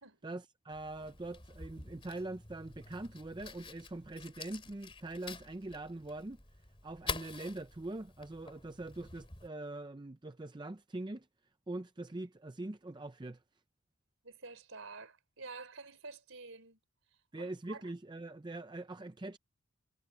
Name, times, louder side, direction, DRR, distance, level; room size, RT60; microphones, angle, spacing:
voice 1, 0.2-6.4 6.8-11.3 11.7-13.4 17.3-19.4, right 2 dB, 20° right, 0.5 m, -43 dB
Fire, 0.7-9.5, left 4 dB, 25° left, 2.8 m, -47 dB
voice 2, 14.2-16.8 17.4-17.8, right 4 dB, 65° right, 4.6 m, -49 dB
head